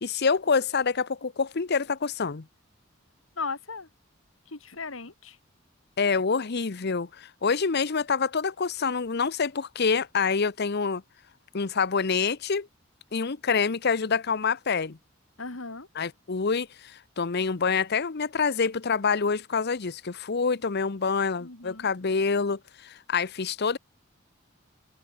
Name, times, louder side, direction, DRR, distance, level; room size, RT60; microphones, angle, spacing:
voice 1, 0.0-2.5 6.0-11.0 11.5-12.7 13.1-15.0 16.0-23.8, left 5 dB, 55° left, 0.8 m, -26 dB
voice 2, 3.4-3.9 4.5-5.4 15.4-15.9 21.4-21.9, left 4 dB, 85° left, 2.8 m, -37 dB
open air
head